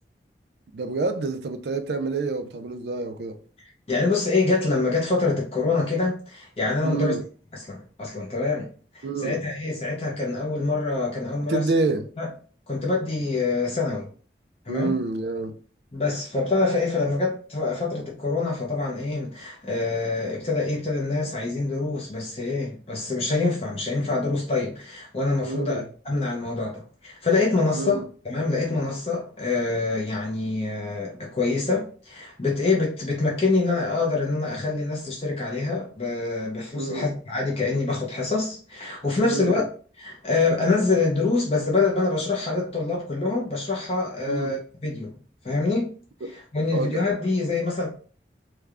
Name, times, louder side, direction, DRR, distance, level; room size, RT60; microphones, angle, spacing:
voice 1, 0.7-3.4 6.8-7.2 9.0-9.4 11.4-12.1 14.7-15.6 25.4-25.9 27.7-28.0 36.7-37.1 39.2-39.6 44.3-44.6 46.2-46.3 46.7-47.0, right 3 dB, 65° right, 0.4 m, -28 dB
voice 2, 3.9-7.2 7.5-11.6 12.2-12.3 12.7-14.1 14.7-14.9 15.9-39.6 40.0-45.1 45.4-45.9 46.3-47.9, left 3 dB, 35° left, 0.6 m, -25 dB
3.3 x 2.2 x 3.5 m
head